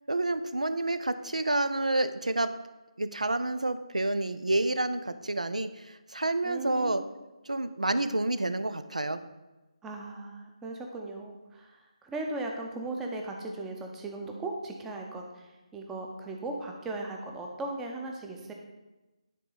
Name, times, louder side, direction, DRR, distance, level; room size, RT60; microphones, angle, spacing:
voice 1, 0.1-2.5 3.0-7.0 7.5-9.2, right 2 dB, 90° right, 12 dB, 0.4 m, -29 dB
voice 2, 6.4-7.0 9.8-18.5, right 2 dB, 10° right, 1 dB, 0.6 m, -38 dB
10.0 x 3.8 x 3.9 m, 1.1 s
figure-of-eight pair, 155°, 4 cm